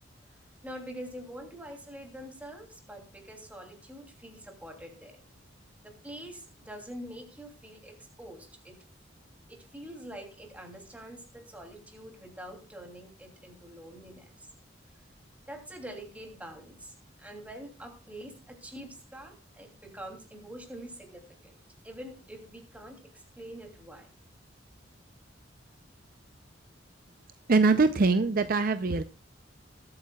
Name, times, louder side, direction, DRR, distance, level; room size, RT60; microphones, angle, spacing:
voice 1, 0.6-5.2 5.8-8.7 9.5-14.5 15.4-21.5 21.8-24.1, right 1 dB, 10° right, 2 dB, 2.9 m, -45 dB
voice 2, 27.5-29.0, right 3 dB, 50° right, 11 dB, 0.6 m, -23 dB
21.0 x 8.8 x 2.3 m, 0.35 s
head